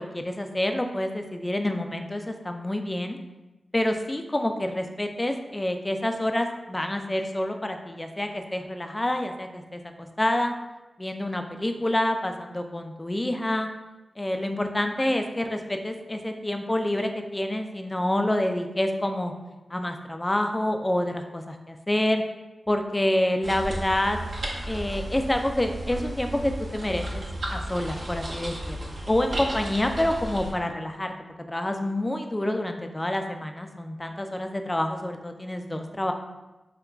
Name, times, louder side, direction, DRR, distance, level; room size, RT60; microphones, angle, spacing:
voice 1, 0.0-3.2 3.7-10.5 11.0-13.7 14.2-19.3 19.7-22.2 22.7-24.2 24.7-27.2 27.5-31.1 31.5-36.1, left 1 dB, 25° left, 5 dB, 0.3 m, -27 dB
sound 1, 23.4-30.5, right 1 dB, 65° right, 0.7 m, -34 dB
3.4 x 2.9 x 2.3 m, 1.1 s
cardioid pair, 50°, 0 cm